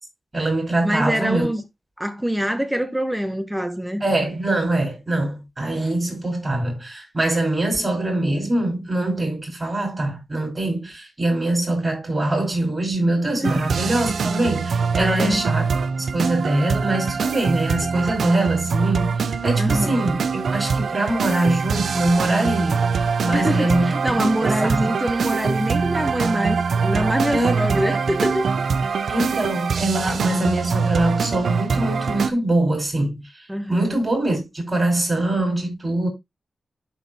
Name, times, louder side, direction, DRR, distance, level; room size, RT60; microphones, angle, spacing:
voice 1, 0.3-1.5 4.0-15.6 16.1-24.0 24.4-24.9 27.3-28.0 29.1-33.3 33.7-36.1, right 1 dB, 25° right, 4.5 m, -23 dB
voice 2, 0.8-1.6 2.0-4.0 13.3-13.6 15.0-15.4 19.6-20.1 23.3-28.5 33.5-34.0, equal, 5° right, 1.0 m, -24 dB
sound 1, 13.4-32.3, right 5 dB, 80° right, 0.5 m, -23 dB
11.0 x 4.1 x 2.8 m
wide cardioid pair, 80°, 0 cm